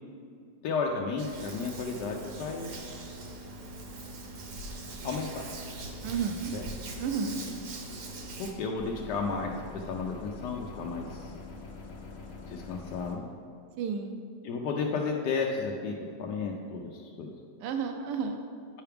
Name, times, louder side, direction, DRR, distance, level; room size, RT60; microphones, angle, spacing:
voice 1, 0.6-2.8 5.0-5.4 6.5-6.6 8.4-11.3 12.5-13.2 14.4-15.9 16.2-17.3, left 4 dB, 80° left, 0 dB, 1.2 m, -33 dB
Hands, 1.2-8.5, right 2 dB, 60° right, 1.1 m, -41 dB
voice 2, 6.0-6.5 7.0-7.4 13.8-14.2 17.6-18.4, right 6 dB, 85° right, 5 dB, 1.2 m, -31 dB
sound 1, 8.8-13.2, left 3 dB, 60° left, 1.6 m, -44 dB
9.7 x 5.7 x 3.4 m, 2.3 s
omnidirectional pair, 1.8 m